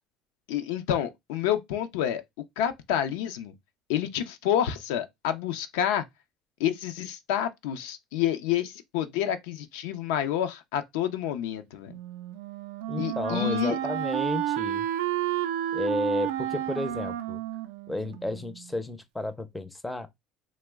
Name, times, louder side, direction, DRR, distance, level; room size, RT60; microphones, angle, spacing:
voice 1, 0.5-2.2 2.6-3.5 3.9-6.0 6.6-11.9 13.0-13.8, left 10 dB, 85° left, 0.4 m, -28 dB
Wind instrument woodwind instrument, 11.9-18.7, right 12 dB, 90° right, 0.3 m, -31 dB
voice 2, 12.9-14.9 15.7-17.4 17.9-20.1, left 2 dB, 10° left, 0.4 m, -32 dB
3.0 x 2.0 x 3.3 m
cardioid pair, 125°, 0 cm